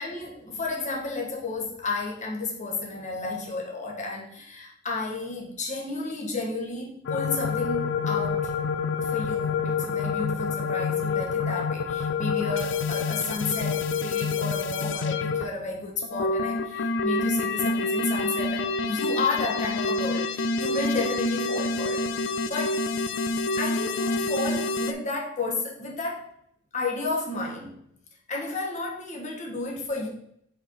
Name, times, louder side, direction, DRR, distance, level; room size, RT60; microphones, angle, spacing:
voice 1, 0.0-8.5 9.0-22.8 23.6-26.3 26.7-27.8 28.3-30.1, left 3 dB, 40° left, -1 dB, 1.4 m, -32 dB
sound 1, 7.1-15.4 16.0-24.9, left 3 dB, 65° left, 0.4 m, -27 dB
5.1 x 4.3 x 4.6 m, 0.72 s
head